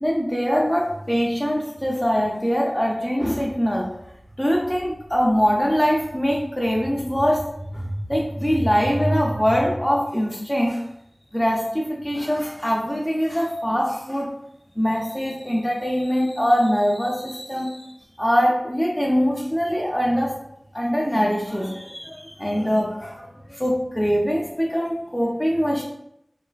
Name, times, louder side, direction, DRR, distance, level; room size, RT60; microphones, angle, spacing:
voice 1, 0.0-3.9 4.4-10.8 11.3-14.3 14.8-20.3 20.7-25.8, equal, 10° left, -2 dB, 0.4 m, -23 dB
3.2 x 2.3 x 2.2 m, 0.78 s
wide cardioid pair, 55°, 0 cm